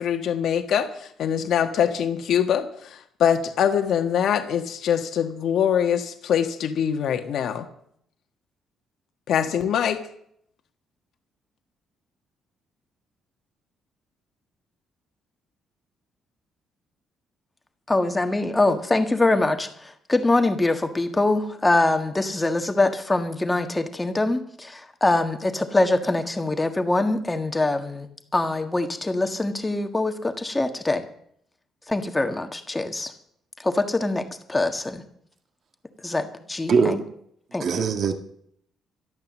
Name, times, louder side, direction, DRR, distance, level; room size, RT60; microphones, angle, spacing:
voice 1, 0.0-7.7 9.3-10.0, left 8 dB, 60° left, 1.5 m, -23 dB
voice 2, 17.9-31.0 31.9-33.1 33.6-35.0 36.0-37.0 37.5-37.9, left 2 dB, 10° left, 1.6 m, -24 dB
voice 3, 36.7-37.1 37.6-38.1, right 5 dB, 45° right, 1.7 m, -21 dB
12.5 x 12.0 x 7.5 m
cardioid pair, 145°, 0 cm